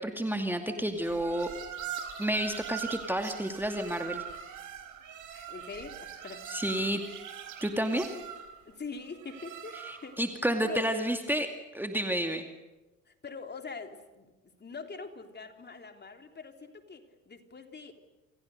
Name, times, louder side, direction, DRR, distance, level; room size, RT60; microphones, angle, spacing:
voice 1, 0.0-1.5 2.2-4.2 6.5-7.0 7.6-8.1 9.8-12.5, right 1 dB, 5° right, 5 dB, 2.3 m, -30 dB
sound 1, 1.0-10.2, right 9 dB, 50° right, 4.5 m, -42 dB
voice 2, 5.3-6.5 8.7-10.2 10.6-10.9 13.1-17.9, left 4 dB, 25° left, 5 dB, 3.5 m, -44 dB
29.5 x 28.0 x 6.7 m, 1.1 s
figure-of-eight pair, 60°, 40 cm